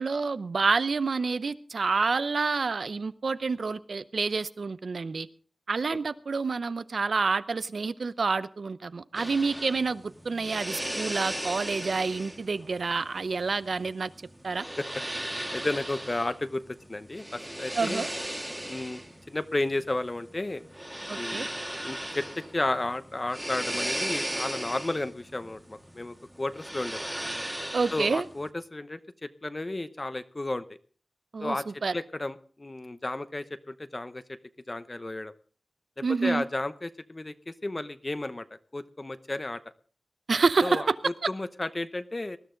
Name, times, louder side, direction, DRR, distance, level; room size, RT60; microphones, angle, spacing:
voice 1, 0.0-5.3 5.7-14.1 14.4-14.6 17.8-18.1 21.1-21.5 27.7-28.2 31.3-31.9 36.0-36.4 40.3-40.9, right 4 dB, 75° right, 15 dB, 0.7 m, -28 dB
sound 1, 9.1-28.5, right 1 dB, 10° right, 1.6 m, -37 dB
voice 2, 15.5-16.6 16.9-18.1 18.7-19.0 19.3-20.6 21.1-21.5 21.8-22.2 22.5-27.1 27.9-30.6 31.4-31.6 31.9-34.4 34.7-35.3 36.0-38.5 38.7-39.6 40.6-42.4, left 2 dB, 35° left, 12 dB, 0.8 m, -33 dB
19.5 x 12.5 x 3.9 m, 0.43 s
wide cardioid pair, 75°, 0 cm